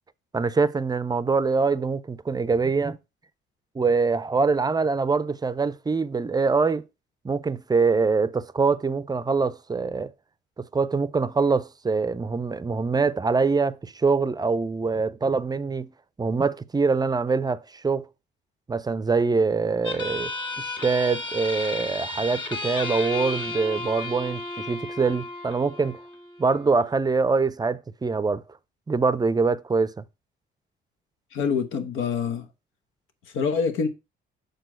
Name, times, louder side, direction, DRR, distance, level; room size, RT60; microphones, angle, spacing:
voice 1, 0.3-3.0 3.7-6.8 7.2-10.1 10.6-15.9 16.2-18.1 18.7-20.3 20.6-26.0 26.4-28.4 28.9-30.0, right 4 dB, 20° right, 0.5 m, -24 dB
sound 1, 19.8-26.9, left 2 dB, 25° left, 1.9 m, -33 dB
voice 2, 31.3-32.5 33.3-33.9, left 6 dB, 90° left, 1.1 m, -25 dB
6.5 x 4.6 x 4.4 m
cardioid pair, 90°, 20 cm